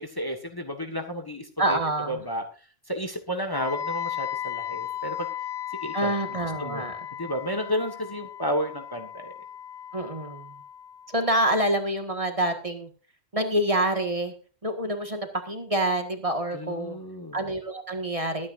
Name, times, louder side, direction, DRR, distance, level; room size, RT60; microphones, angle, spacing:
voice 1, 0.0-1.8 2.1-2.5 2.9-5.3 5.8-6.9 7.2-9.3 16.5-17.4, equal, 20° left, 6 dB, 1.5 m, -32 dB
voice 2, 1.6-2.2 5.9-7.0 9.9-10.5 11.1-12.9 13.3-14.3 14.6-17.0 17.3-18.5, right 1 dB, 35° right, 5 dB, 1.8 m, -27 dB
Wind instrument woodwind instrument, 3.5-11.4, left 10 dB, 50° left, 1.0 m, -36 dB
21.5 x 9.6 x 2.6 m, 0.37 s
omnidirectional pair, 1.1 m